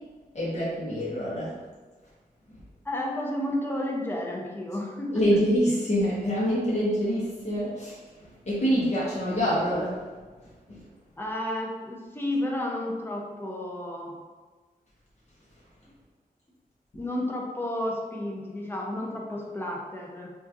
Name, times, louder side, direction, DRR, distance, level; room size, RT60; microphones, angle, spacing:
voice 1, 0.3-1.5 5.1-10.0 10.7-10.8, equal, 45° left, -8 dB, 0.8 m, -26 dB
voice 2, 2.8-5.4 11.2-14.2 16.9-20.3, left 1 dB, 15° left, -2 dB, 0.5 m, -32 dB
2.9 x 2.3 x 3.6 m, 1.4 s
wide cardioid pair, 160°, 16 cm